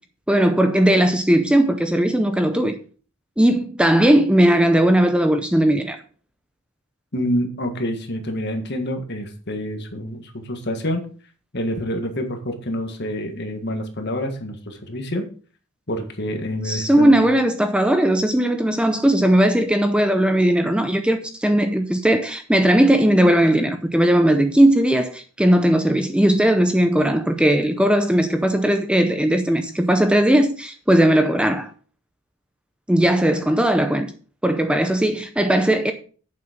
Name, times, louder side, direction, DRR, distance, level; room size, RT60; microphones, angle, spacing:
voice 1, 0.3-2.8 3.4-6.0 16.6-31.7 32.9-34.1 34.4-35.9, right 1 dB, 5° right, 0.5 m, -18 dB
voice 2, 7.1-11.0 11.5-15.2 15.9-17.2, equal, 50° left, 1.7 m, -27 dB
8.8 x 7.2 x 5.1 m
head